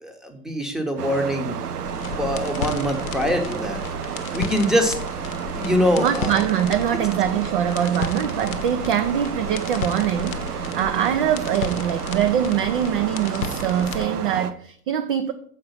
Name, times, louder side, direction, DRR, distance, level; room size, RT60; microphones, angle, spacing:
voice 1, 0.0-1.6 2.0-3.8 4.3-5.0 5.6-6.4, equal, ahead, 0.8 m, -23 dB
sound 1, 1.0-14.5, right 7 dB, 75° right, 0.7 m, -31 dB
sound 2, 1.8-14.1, left 8 dB, 65° left, 0.8 m, -35 dB
voice 2, 6.0-15.3, right 9 dB, 40° right, 0.4 m, -23 dB
7.1 x 4.7 x 5.4 m
figure-of-eight pair, 95°, 46 cm